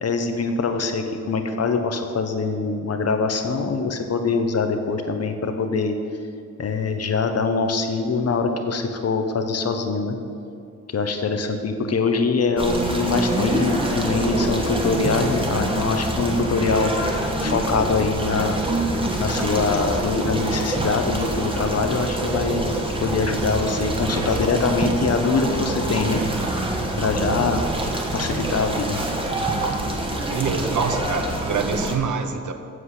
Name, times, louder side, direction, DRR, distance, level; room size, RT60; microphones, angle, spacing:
voice 1, 0.0-6.0 6.6-10.2 10.9-18.6 19.2-26.2 27.0-27.7 28.1-29.0, left 4 dB, 50° left, 6 dB, 0.9 m, -23 dB
sound 1, 12.6-32.0, right 1 dB, 15° right, 1.2 m, -25 dB
voice 2, 30.0-32.5, right 6 dB, 70° right, 7 dB, 0.8 m, -26 dB
7.9 x 7.7 x 6.5 m, 2.4 s
wide cardioid pair, 125°, 31 cm